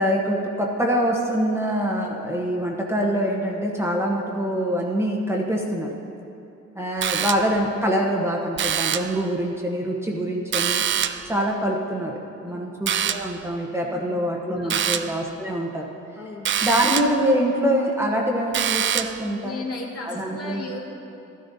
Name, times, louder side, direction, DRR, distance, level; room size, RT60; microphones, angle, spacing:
voice 1, 0.0-5.9 6.7-10.8 11.3-15.9 16.6-19.6 20.0-20.6, equal, 10° right, -2 dB, 1.0 m, -24 dB
sound 1, 7.0-7.7 8.6-9.2 10.5-11.3 12.9-13.4 14.7-15.2 16.4-17.2 18.5-19.3, right 9 dB, 40° right, 0.4 m, -25 dB
voice 2, 13.8-14.2 14.5-15.0 16.2-16.6 19.4-20.8, left 3 dB, 55° left, -3 dB, 2.1 m, -36 dB
12.5 x 12.5 x 2.7 m, 2.8 s
cardioid pair, 90°, 30 cm